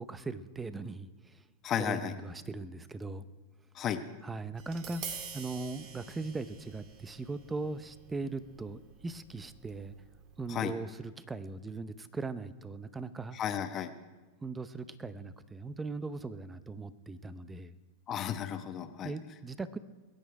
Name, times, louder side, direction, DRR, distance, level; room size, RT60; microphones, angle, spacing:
voice 1, 0.0-1.5 1.8-3.3 4.2-9.9 10.4-13.4 14.4-17.8 19.0-19.8, right 3 dB, 15° right, 14 dB, 0.8 m, -39 dB
voice 2, 1.6-2.1 3.7-4.0 10.5-10.7 13.3-13.9 18.1-19.1, left 9 dB, 35° left, 9 dB, 1.1 m, -33 dB
Tap, 4.6-10.7, right 7 dB, 45° right, 2.1 m, -48 dB
22.0 x 9.2 x 4.8 m, 1.2 s
hypercardioid pair, 115°, 0 cm